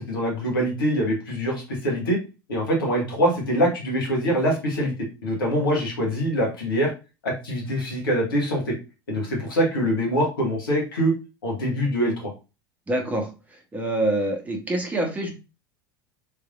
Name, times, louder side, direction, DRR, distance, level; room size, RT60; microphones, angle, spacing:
voice 1, 0.0-2.2 2.5-4.9 5.2-6.9 7.2-8.8 9.1-11.1 11.4-12.3, equal, 70° left, -1 dB, 1.3 m, -24 dB
voice 2, 12.9-13.3 13.7-15.3, right 1 dB, 15° right, 2 dB, 1.0 m, -25 dB
3.3 x 3.2 x 2.4 m, 0.29 s
figure-of-eight pair, 75°, 12 cm